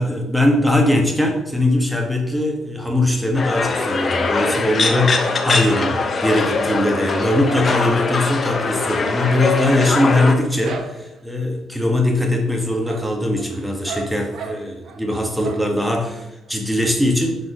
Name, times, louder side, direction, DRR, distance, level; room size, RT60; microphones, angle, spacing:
voice 1, 0.0-17.4, left 1 dB, ahead, 1 dB, 1.5 m, -20 dB
sound 1, 3.4-10.4, left 4 dB, 40° left, 1.0 m, -22 dB
sound 2, 6.9-11.3 11.8-12.3 12.6-15.0 15.4-16.0 16.4-16.5 16.8-16.9, right 4 dB, 65° right, 1.0 m, -38 dB
6.2 x 4.3 x 5.5 m, 0.92 s
cardioid pair, 90°, 0 cm